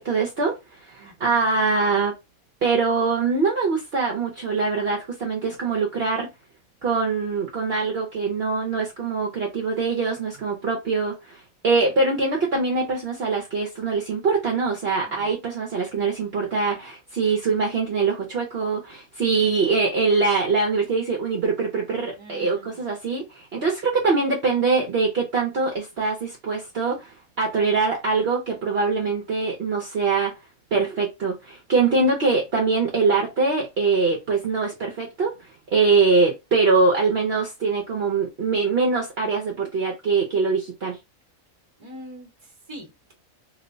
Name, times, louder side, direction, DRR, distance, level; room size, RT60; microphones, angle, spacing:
voice 1, 0.0-2.2 2.6-6.3 6.8-30.4 30.7-41.0, right 4 dB, 50° right, 0.9 m, -23 dB
voice 2, 1.0-1.4 15.0-15.3 22.2-22.8 41.8-42.3 42.7-43.1, equal, 20° right, 1.0 m, -43 dB
3.0 x 2.1 x 3.8 m
omnidirectional pair, 1.5 m